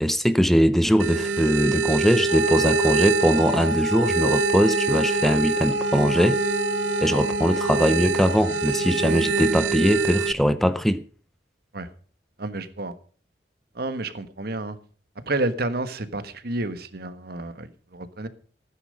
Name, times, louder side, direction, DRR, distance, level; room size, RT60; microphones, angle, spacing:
voice 1, 0.0-6.4 7.0-11.0, equal, ahead, 0.6 m, -21 dB
sound 1, 1.0-10.3, right 4 dB, 90° right, 0.6 m, -26 dB
Wind instrument woodwind instrument, 2.3-9.7, equal, 70° left, 2.7 m, -27 dB
voice 2, 12.4-12.9 13.7-14.8 15.3-18.3, right 2 dB, 60° right, 1.4 m, -30 dB
15.5 x 10.0 x 5.3 m
head